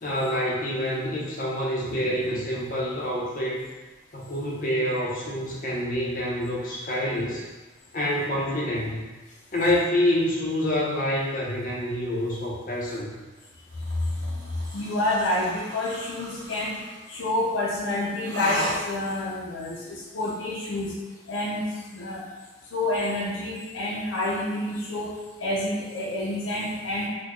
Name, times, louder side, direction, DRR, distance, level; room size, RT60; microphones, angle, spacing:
voice 1, 0.0-3.7 4.1-7.5 7.9-9.0 9.5-13.1, left 1 dB, 45° left, -4 dB, 0.7 m, -27 dB
sound 1, 13.7-17.1 18.2-19.3, right 1 dB, 65° right, 0.6 m, -36 dB
voice 2, 14.7-16.8 17.1-21.0 21.3-22.2 22.7-27.1, left 1 dB, 85° left, -4 dB, 0.5 m, -28 dB
4.0 x 2.2 x 3.1 m, 1.2 s
head